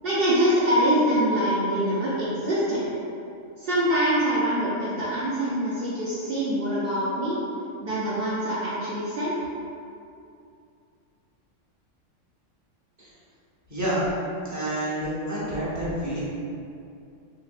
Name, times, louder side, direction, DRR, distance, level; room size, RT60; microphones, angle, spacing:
voice 1, 0.0-2.8 3.6-7.4 7.8-9.4, equal, 60° right, -8 dB, 0.6 m, -24 dB
voice 2, 13.7-14.0 14.4-16.2, right 1 dB, 20° right, -9 dB, 0.6 m, -28 dB
3.7 x 2.6 x 2.4 m, 2.5 s
omnidirectional pair, 1.3 m